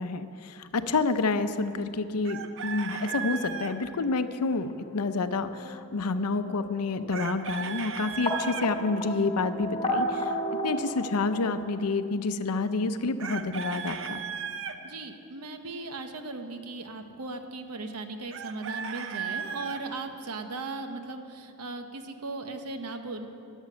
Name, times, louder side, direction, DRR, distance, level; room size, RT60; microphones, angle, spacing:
voice 1, 0.0-10.3 10.6-14.2, left 3 dB, 80° left, 10 dB, 0.6 m, -29 dB
Chicken rooster, 2.2-3.7 7.1-8.7 13.2-14.8 18.3-19.8, right 6 dB, 60° right, 0.7 m, -35 dB
sound 1, 3.0-11.4, equal, 20° left, 2.4 m, -35 dB
voice 2, 14.8-23.3, right 3 dB, 90° right, 6 dB, 1.0 m, -37 dB
12.5 x 7.3 x 9.4 m, 2.6 s
head